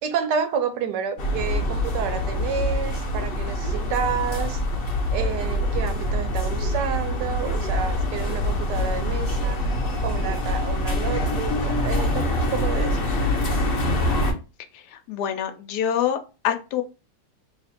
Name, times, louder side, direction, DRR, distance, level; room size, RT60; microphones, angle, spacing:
voice 1, 0.0-4.6 5.1-9.7 10.0-13.1, right 7 dB, 80° right, 1.2 m, -30 dB
sound 1, 1.2-14.3, left 1 dB, 50° left, 0.7 m, -25 dB
voice 2, 14.7-16.2 16.4-16.8, left 9 dB, 75° left, 1.2 m, -26 dB
3.1 x 2.5 x 4.2 m
omnidirectional pair, 1.8 m